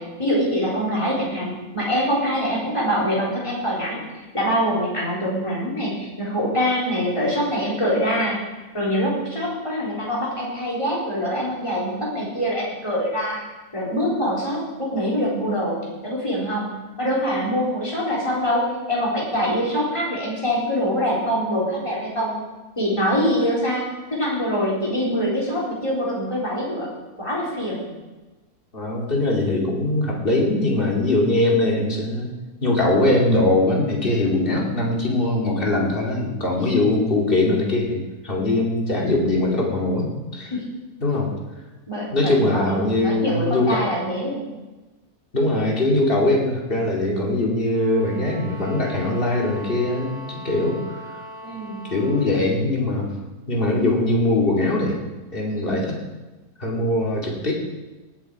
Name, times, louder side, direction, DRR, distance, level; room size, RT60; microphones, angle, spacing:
voice 1, 0.0-4.0 4.3-8.4 8.7-13.4 13.7-16.7 17.0-22.3 22.8-23.8 24.1-26.9 27.2-27.9 40.5-40.6 41.9-44.4 51.4-51.9 55.5-55.8, equal, 20° left, -5 dB, 4.0 m, -24 dB
voice 2, 28.7-32.3 32.6-40.5 41.0-41.3 42.1-43.9 45.3-51.2 51.9-53.1 53.5-55.0 55.3-56.0 56.6-57.5, left 2 dB, 35° left, -2 dB, 2.6 m, -21 dB
sound 1, 47.7-52.4, right 1 dB, ahead, 4.6 m, -40 dB
19.0 x 8.1 x 4.7 m, 1.2 s
omnidirectional pair, 1.6 m